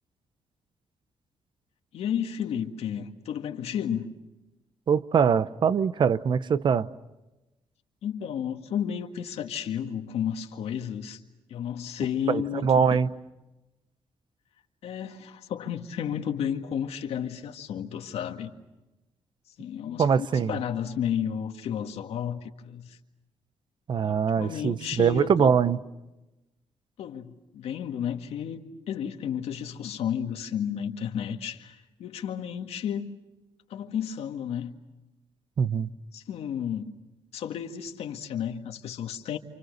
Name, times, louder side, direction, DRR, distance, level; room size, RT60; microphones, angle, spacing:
voice 1, 1.9-4.1 8.0-11.2 11.5-12.9 14.8-18.5 19.6-20.1 20.5-23.0 24.0-25.5 27.0-28.6 28.9-33.1 33.7-34.7 36.1-37.0 37.3-39.4, left 8 dB, 90° left, 1.9 m, -32 dB
voice 2, 4.9-6.9 12.3-13.1 20.0-20.5 23.9-25.8 35.6-35.9, right 6 dB, 50° right, 0.8 m, -23 dB
28.5 x 28.5 x 6.7 m
cardioid pair, 130°, 10 cm